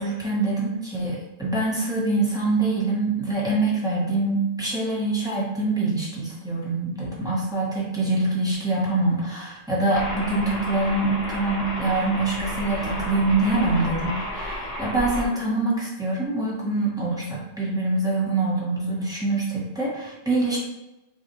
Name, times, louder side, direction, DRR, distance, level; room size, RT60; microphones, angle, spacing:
voice 1, 0.0-20.6, right 2 dB, 5° right, -7 dB, 1.0 m, -25 dB
sound 1, 9.9-15.3, left 1 dB, 60° left, 1.7 m, -32 dB
5.1 x 2.4 x 3.0 m, 0.99 s
omnidirectional pair, 1.1 m